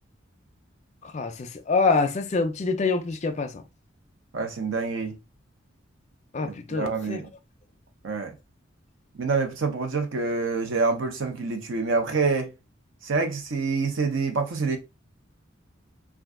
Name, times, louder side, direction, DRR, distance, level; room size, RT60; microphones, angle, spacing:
voice 1, 1.0-3.6 6.3-7.2, left 4 dB, 35° left, 0.4 m, -26 dB
voice 2, 4.3-5.2 6.4-7.3 8.0-8.3 9.2-12.5 13.0-14.8, right 4 dB, 70° right, 0.6 m, -26 dB
2.4 x 2.2 x 3.6 m
head